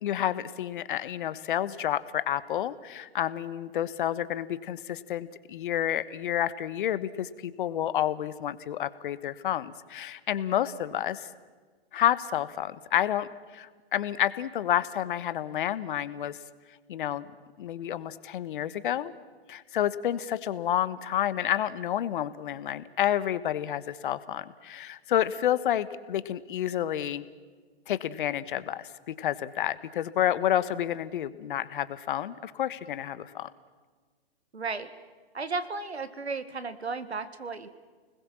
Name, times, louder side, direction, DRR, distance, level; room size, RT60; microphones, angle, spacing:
voice 1, 0.0-11.3 11.9-13.3 13.5-16.4 16.9-17.3 17.6-19.1 19.5-27.2 27.9-33.5, left 11 dB, 50° left, 15 dB, 1.3 m, -29 dB
voice 2, 34.5-34.9 35.3-37.7, right 4 dB, 85° right, 12 dB, 2.0 m, -34 dB
30.0 x 20.5 x 7.4 m, 1.5 s
hypercardioid pair, 125°, 32 cm